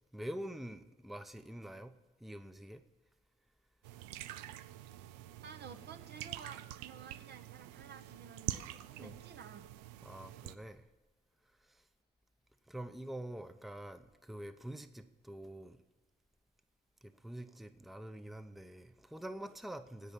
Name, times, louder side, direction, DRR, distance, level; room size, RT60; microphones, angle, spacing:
voice 1, 0.1-1.9 2.2-2.8 9.0-9.2 10.0-10.8 11.6-11.8 12.7-15.8 17.0-20.1, right 1 dB, ahead, 0.7 m, -46 dB
sound 1, 3.8-10.6, right 13 dB, 85° right, 0.4 m, -46 dB
voice 2, 5.4-9.7, right 6 dB, 55° right, 1.0 m, -52 dB
16.0 x 5.5 x 7.3 m
hypercardioid pair, 50°, 21 cm